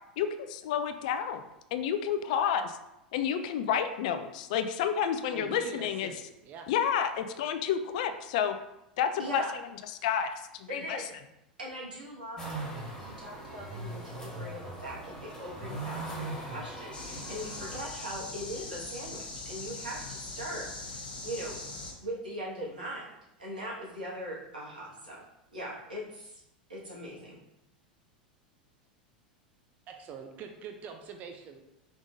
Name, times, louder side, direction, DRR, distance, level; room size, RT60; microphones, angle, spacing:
voice 1, 0.2-1.4 1.7-2.8 3.1-6.1 6.7-8.5 9.0-9.4 10.0-11.0, left 8 dB, 55° left, 8 dB, 0.4 m, -30 dB
voice 2, 5.3-6.2 6.4-6.7 29.9-31.6, right 6 dB, 35° right, 5 dB, 0.5 m, -43 dB
voice 3, 9.2-9.5 10.7-11.1 11.6-21.6 22.0-23.1 23.4-25.2 25.5-26.4 26.7-27.4, equal, 80° right, -6 dB, 1.6 m, -40 dB
sound 1, 12.4-17.8, right 2 dB, 10° left, 1.6 m, -40 dB
sound 2, 16.9-21.9, left 3 dB, 80° left, 0.9 m, -41 dB
5.1 x 3.6 x 2.6 m, 0.88 s
figure-of-eight pair, 85°, 5 cm